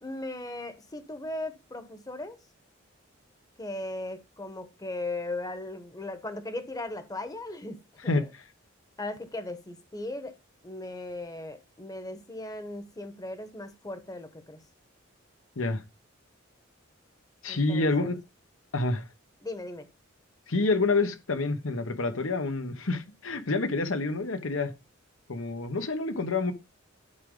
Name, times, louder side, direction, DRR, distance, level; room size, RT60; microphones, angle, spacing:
voice 1, 0.0-2.4 3.6-7.8 8.0-8.3 9.0-10.3 10.6-14.6 17.5-18.2 19.4-19.9, left 2 dB, 20° left, 1.1 m, -37 dB
voice 2, 17.4-18.2 18.7-19.0 20.5-24.7 25.3-26.5, left 3 dB, 75° left, 1.2 m, -28 dB
11.0 x 5.0 x 3.8 m
head